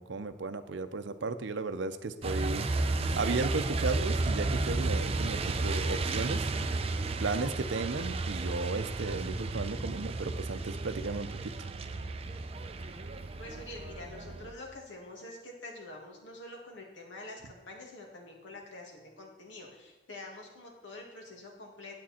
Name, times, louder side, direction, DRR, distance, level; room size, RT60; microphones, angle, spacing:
voice 1, 0.0-2.7 3.2-6.5 7.2-11.5, right 3 dB, 80° right, 11 dB, 0.6 m, -35 dB
Truck, 2.2-14.5, right 3 dB, 30° right, 0.5 m, -33 dB
voice 2, 13.4-22.0, left 2 dB, 90° left, -1 dB, 2.2 m, -46 dB
8.7 x 8.5 x 4.3 m, 1.2 s
head